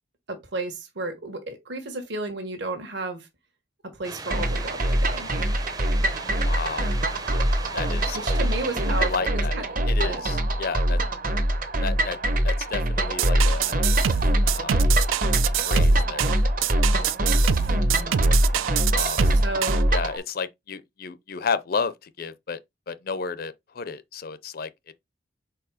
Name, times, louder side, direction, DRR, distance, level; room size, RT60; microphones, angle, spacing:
voice 1, 0.3-3.3 3.9-5.3 8.1-10.2 17.7-18.2 19.4-19.9, right 2 dB, 60° right, 1.4 m, -33 dB
sound 1, 4.0-9.2, right 3 dB, 20° right, 0.6 m, -38 dB
sound 2, 4.3-20.2, right 1 dB, 45° right, 0.9 m, -23 dB
voice 2, 6.4-6.9 7.7-8.2 9.0-9.5 9.9-11.0 11.8-12.2 12.4-14.1 14.5-14.7 15.6-16.3 18.9-19.2 19.9-22.6 22.9-24.7, left 5 dB, 50° left, 0.4 m, -32 dB
sound 3, 13.2-19.8, right 9 dB, 85° right, 0.4 m, -26 dB
4.6 x 4.5 x 4.9 m
head